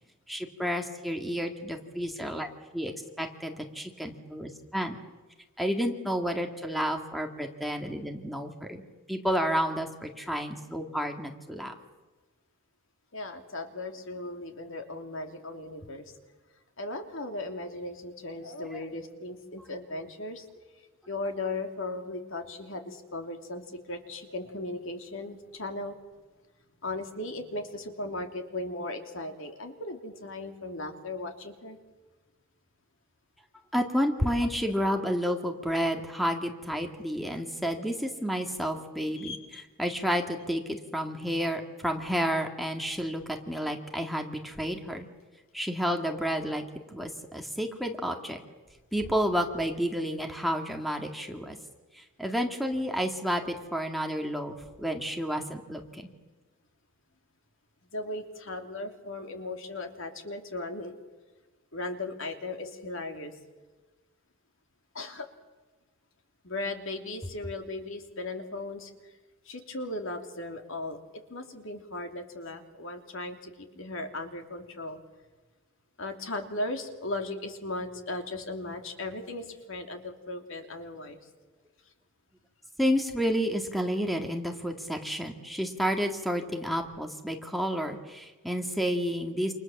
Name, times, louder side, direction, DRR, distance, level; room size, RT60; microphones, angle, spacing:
voice 1, 0.3-2.5 2.7-5.0 5.6-8.8 9.1-11.7 33.7-45.1 45.5-46.6 46.9-48.4 48.9-51.6 51.9-56.1 82.8-89.5, equal, ahead, 4 dB, 2.1 m, -30 dB
voice 2, 13.1-16.0 16.8-20.4 21.1-23.6 23.9-25.9 26.8-31.8 39.2-39.6 57.9-60.9 61.7-63.3 64.9-65.3 66.4-68.9 69.5-71.0 71.3-75.0 76.0-81.2, left 2 dB, 60° left, 5 dB, 3.0 m, -37 dB
29.0 x 27.5 x 7.3 m, 1.3 s
head